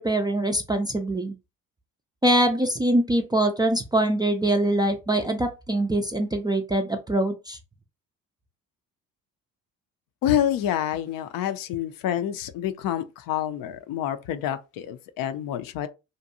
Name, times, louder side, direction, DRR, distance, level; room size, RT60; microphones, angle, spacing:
voice 1, 0.0-1.3 2.2-7.6, right 1 dB, 10° right, 0.3 m, -23 dB
voice 2, 10.2-15.9, left 11 dB, 60° left, 0.5 m, -27 dB
2.6 x 2.2 x 2.7 m
hypercardioid pair, 60°, 40 cm